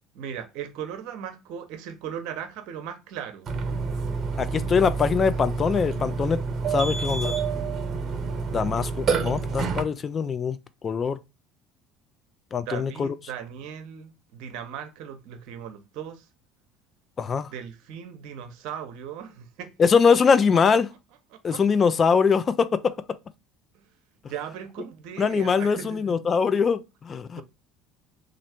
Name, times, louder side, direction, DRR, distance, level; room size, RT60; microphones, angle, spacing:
voice 1, 0.1-3.5 12.6-16.3 17.5-19.7 21.3-21.6 23.7-23.8 24.3-26.2 27.3-27.4, right 8 dB, 65° right, 0.7 m, -38 dB
Burping eructation, 3.5-9.8, right 5 dB, 40° right, 0.9 m, -28 dB
voice 2, 4.4-6.4 6.7-7.4 8.5-10.6 10.8-11.2 12.5-13.1 17.2-17.5 19.8-20.9 21.4-22.9 25.2-27.4, left 6 dB, 35° left, 0.4 m, -22 dB
3.1 x 2.6 x 4.3 m
hypercardioid pair, 65°, 0 cm